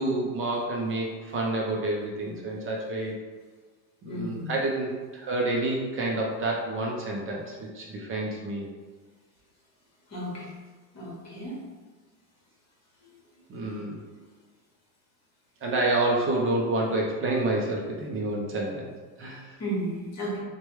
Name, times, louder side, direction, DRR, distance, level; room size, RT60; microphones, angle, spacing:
voice 1, 0.0-3.2 4.0-8.7 13.5-14.0 15.6-18.9 19.2-19.6, right 2 dB, 30° right, -1 dB, 0.4 m, -28 dB
voice 2, 4.1-4.4 10.1-10.4 10.9-11.6 19.6-20.4, right 1 dB, 35° left, -4 dB, 1.1 m, -33 dB
3.0 x 2.2 x 3.0 m, 1.4 s
supercardioid pair, 110°, 48 cm